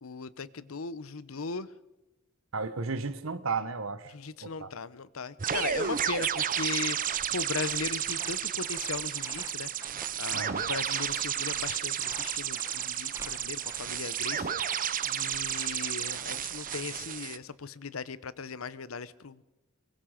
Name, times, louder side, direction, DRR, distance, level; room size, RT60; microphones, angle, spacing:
voice 1, 0.0-1.7 4.1-19.4, left 4 dB, 85° left, 17 dB, 0.8 m, -38 dB
voice 2, 2.5-4.1 4.4-4.7 10.3-10.6, right 4 dB, 75° right, 13 dB, 1.2 m, -34 dB
sound 1, 5.4-17.0, right 2 dB, 15° right, 1.6 m, -49 dB
sound 2, 5.4-17.4, right 9 dB, 40° right, 0.7 m, -32 dB
24.0 x 22.0 x 5.1 m, 1.0 s
head